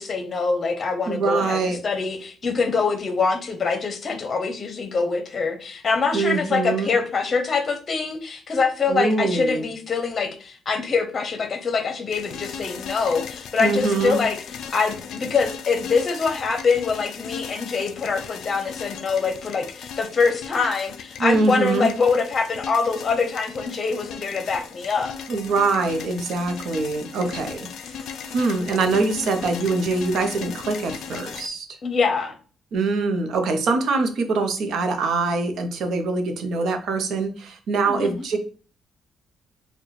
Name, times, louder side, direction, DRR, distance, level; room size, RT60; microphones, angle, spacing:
voice 1, 0.0-14.4 14.7-25.1 31.8-32.3 37.9-38.2, left 4 dB, 35° left, 0.8 m, -24 dB
voice 2, 1.1-1.8 6.1-6.9 8.9-9.6 13.6-14.2 21.2-21.9 25.3-31.7 32.7-38.4, right 3 dB, 65° right, 0.7 m, -24 dB
sound 1, 12.1-31.5, left 7 dB, 70° left, 0.4 m, -37 dB
4.6 x 2.2 x 3.2 m
cardioid pair, 130°, 0 cm